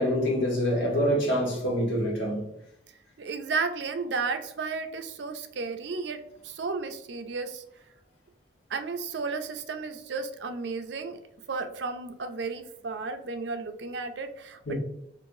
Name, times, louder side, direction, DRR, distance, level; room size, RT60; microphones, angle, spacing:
voice 1, 0.0-2.4 14.7-14.8, equal, 85° left, 1.3 m, -26 dB
voice 2, 3.2-7.6 8.7-11.2 11.5-14.8, right 4 dB, 70° right, 0.4 m, -33 dB
4.7 x 2.5 x 2.6 m
head